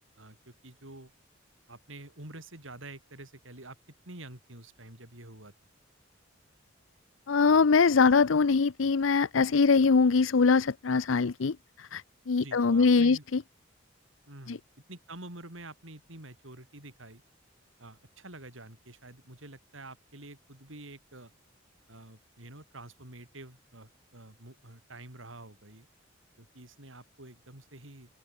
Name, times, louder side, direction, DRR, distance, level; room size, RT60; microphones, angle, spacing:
voice 1, 0.2-1.1 1.7-3.8 4.1-5.5 12.4-13.2 14.3-14.6 14.9-17.2 17.8-21.3 21.9-25.9 26.4-28.2, right 2 dB, 80° right, 7.0 m, -48 dB
voice 2, 7.3-13.4 14.5-14.6, left 4 dB, 85° left, 0.6 m, -23 dB
open air
head